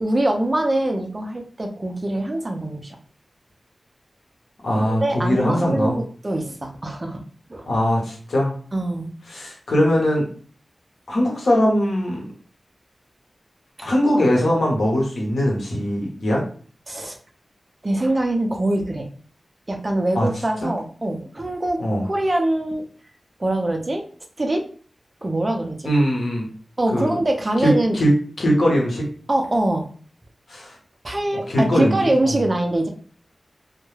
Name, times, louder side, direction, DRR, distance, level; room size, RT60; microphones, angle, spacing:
voice 1, 0.0-3.0 4.7-7.2 7.5-7.7 8.7-9.1 13.8-13.9 16.9-17.2 17.8-19.1 19.7-22.8 23.4-24.0 24.4-24.6 25.2-25.9 26.8-28.0 29.3-29.9 31.0-32.9, right 1 dB, 30° right, 4 dB, 0.4 m, -23 dB
voice 2, 4.6-6.0 7.7-8.5 9.3-10.2 11.1-12.3 13.8-16.4 20.1-20.3 20.6-20.7 21.8-22.0 25.8-26.5 26.9-27.1 27.6-28.1 28.4-29.0 30.5-30.7 31.5-32.1, equal, 90° left, -2 dB, 0.9 m, -20 dB
2.2 x 2.1 x 3.1 m, 0.44 s
wide cardioid pair, 100°, 0 cm